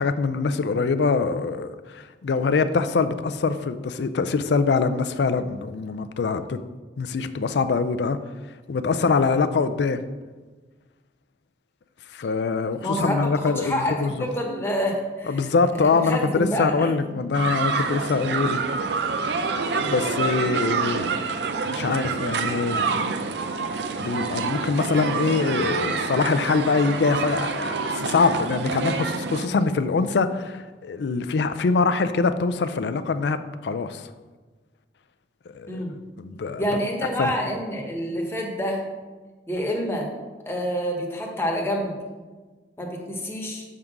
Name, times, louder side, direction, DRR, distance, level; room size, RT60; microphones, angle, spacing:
voice 1, 0.0-6.6 7.0-8.2 8.7-10.0 12.1-14.3 15.3-18.6 19.8-21.2 21.7-23.1 24.0-34.0 35.5-35.8 36.2-36.6 37.2-37.3, left 4 dB, 70° left, 11 dB, 0.4 m, -24 dB
voice 2, 12.8-15.4 15.8-17.2 35.7-36.0 36.6-38.8 39.5-40.1 40.5-42.0 42.8-43.6, equal, 15° left, 0 dB, 1.1 m, -27 dB
sound 1, 17.3-29.5, right 4 dB, 70° right, 0.5 m, -27 dB
6.5 x 3.7 x 5.9 m, 1.3 s
head